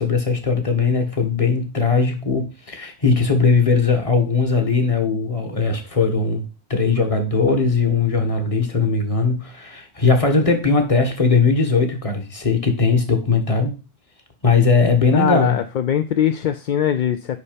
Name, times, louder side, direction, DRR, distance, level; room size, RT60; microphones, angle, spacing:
voice 1, 0.0-6.4 6.7-13.7 14.4-15.6, left 4 dB, 30° left, 4 dB, 1.5 m, -19 dB
voice 2, 15.1-17.4, left 10 dB, 60° left, 8 dB, 0.6 m, -21 dB
6.7 x 5.5 x 5.1 m, 0.31 s
omnidirectional pair, 1.1 m